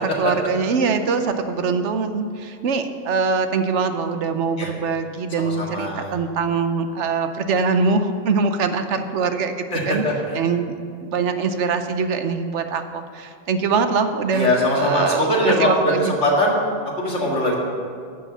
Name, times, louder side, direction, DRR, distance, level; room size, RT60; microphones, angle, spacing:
voice 1, 0.0-10.0 10.3-16.1, right 5 dB, 65° right, 8 dB, 1.0 m, -23 dB
voice 2, 5.4-6.1 9.7-10.1 14.3-16.0 16.2-16.6 17.0-17.6, left 1 dB, 60° left, -2 dB, 2.3 m, -21 dB
11.0 x 6.7 x 7.1 m, 2.2 s
omnidirectional pair, 1.4 m